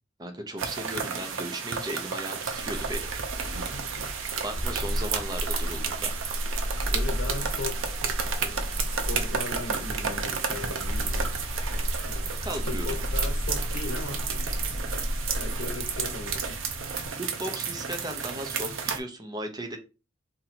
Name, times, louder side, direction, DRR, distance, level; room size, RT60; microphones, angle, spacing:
voice 1, 0.2-3.1 4.4-6.1 12.4-12.9 17.2-19.8, right 1 dB, 20° right, 5 dB, 0.6 m, -36 dB
sound 1, 0.6-19.0, right 6 dB, 85° right, 0.6 m, -32 dB
sound 2, 2.5-17.1, equal, 60° right, 1.3 m, -33 dB
voice 2, 3.7-4.1 6.9-7.9 8.5-11.3 12.0-14.2 15.3-16.6, left 3 dB, 85° left, 6 dB, 0.9 m, -38 dB
2.8 x 2.7 x 4.1 m, 0.30 s
head